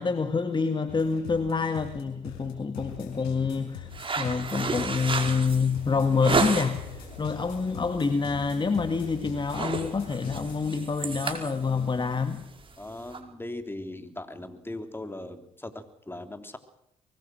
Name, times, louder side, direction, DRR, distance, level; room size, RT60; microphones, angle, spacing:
voice 1, 0.0-3.9 4.2-12.5, left 5 dB, 30° left, 9 dB, 1.9 m, -27 dB
sound 1, 0.9-12.0, left 8 dB, 80° left, 5.6 m, -43 dB
sound 2, 3.9-6.9 7.4-7.7 8.1-8.3 8.6-9.0 9.3-13.2, right 4 dB, 35° right, 5.0 m, -31 dB
voice 2, 12.8-16.6, left 1 dB, 15° left, 8 dB, 3.5 m, -39 dB
24.5 x 20.5 x 6.4 m, 0.79 s
supercardioid pair, 60°, 15 cm